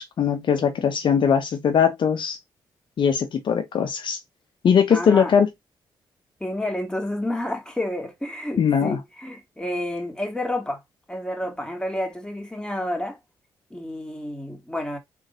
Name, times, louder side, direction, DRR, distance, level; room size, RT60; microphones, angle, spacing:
voice 1, 0.0-2.4 3.0-4.2 4.6-5.5 8.6-9.0, left 7 dB, 65° left, 0.7 m, -20 dB
voice 2, 4.9-5.3 6.4-10.8 11.1-13.2 13.7-15.0, left 1 dB, 10° left, 2.2 m, -30 dB
3.8 x 3.7 x 2.6 m
supercardioid pair, 55°, 9 cm